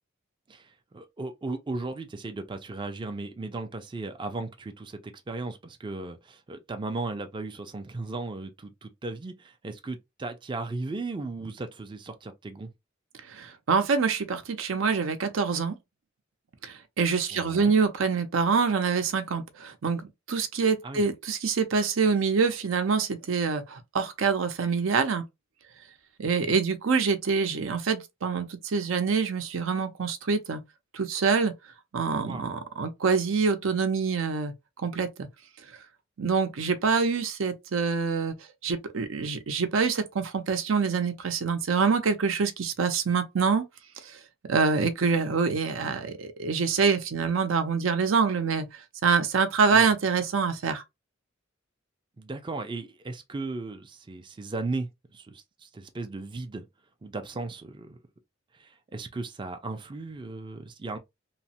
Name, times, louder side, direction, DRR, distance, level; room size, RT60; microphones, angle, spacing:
voice 1, 0.5-12.7 17.3-17.8 20.8-21.0 32.2-32.5 49.7-49.9 52.2-56.7 57.0-58.0 58.5-61.0, right 3 dB, 25° right, 0.4 m, -36 dB
voice 2, 13.3-15.8 16.6-25.2 26.2-30.6 30.9-31.5 31.9-35.3 36.2-38.4 38.6-43.7 44.0-44.2 44.5-50.8, right 5 dB, 80° right, 0.6 m, -26 dB
3.0 x 2.0 x 2.8 m
head